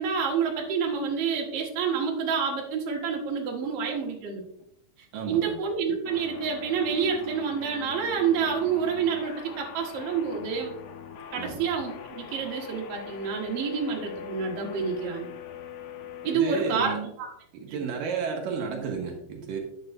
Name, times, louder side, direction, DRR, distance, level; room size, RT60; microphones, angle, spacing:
voice 1, 0.0-4.4 5.3-10.7 11.3-15.3 16.2-16.9 17.7-17.8, right 6 dB, 50° right, -1 dB, 2.3 m, -28 dB
voice 2, 5.1-5.6 11.3-11.6 16.2-17.0 17.5-19.6, right 5 dB, 80° right, 1 dB, 2.8 m, -32 dB
sound 1, 6.1-16.4, left 7 dB, 75° left, 1.7 m, -42 dB
9.9 x 7.8 x 2.6 m, 0.74 s
omnidirectional pair, 3.9 m